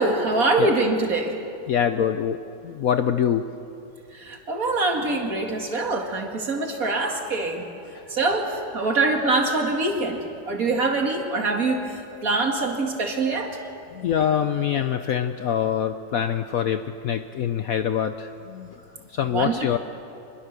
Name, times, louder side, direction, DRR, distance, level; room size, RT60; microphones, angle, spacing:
voice 1, 0.0-1.3 4.1-7.7 8.1-11.8 12.2-13.6 19.3-19.5, right 3 dB, 50° right, 2 dB, 2.5 m, -24 dB
voice 2, 1.7-2.4 2.6-3.4 7.9-8.0 13.9-18.8 19.1-19.8, left 9 dB, 65° left, 9 dB, 0.9 m, -24 dB
25.5 x 21.5 x 6.7 m, 2.7 s
omnidirectional pair, 1.9 m